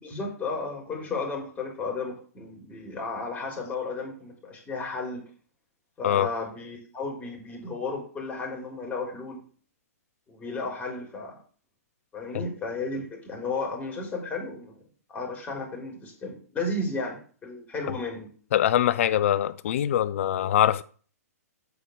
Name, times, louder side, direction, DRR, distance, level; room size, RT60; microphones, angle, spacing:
voice 1, 0.0-5.2 6.0-9.4 10.3-11.4 12.1-14.8 15.1-18.3, left 3 dB, 15° left, 4.0 m, -33 dB
voice 2, 18.5-20.8, left 11 dB, 55° left, 0.7 m, -23 dB
8.1 x 6.0 x 6.5 m
hypercardioid pair, 120°, 9 cm